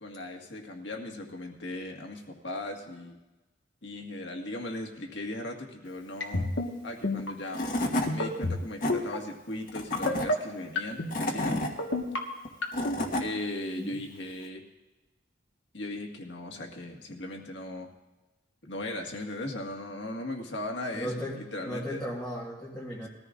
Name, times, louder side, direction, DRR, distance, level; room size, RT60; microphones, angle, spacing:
voice 1, 0.0-3.2 3.8-6.5 6.8-7.6 8.1-11.7 13.2-14.6 15.7-17.9 18.6-22.0, left 1 dB, 70° left, 1 dB, 1.8 m, -38 dB
sound 1, 6.2-6.7 7.0-7.3 8.1-8.6 8.9-9.2 9.9-10.3 10.8-11.1 11.8-12.2 12.6-13.0, left 2 dB, 85° left, 1.5 m, -28 dB
Tools / Wood, 7.2-7.3 7.5-8.1 8.6-8.9 9.7-10.3 10.9-11.7 12.5-13.3, left 1 dB, 50° left, 1.5 m, -29 dB
voice 2, 20.9-21.4 21.6-23.1, equal, 5° left, -7 dB, 1.5 m, -35 dB
21.0 x 14.0 x 2.6 m, 1.1 s
head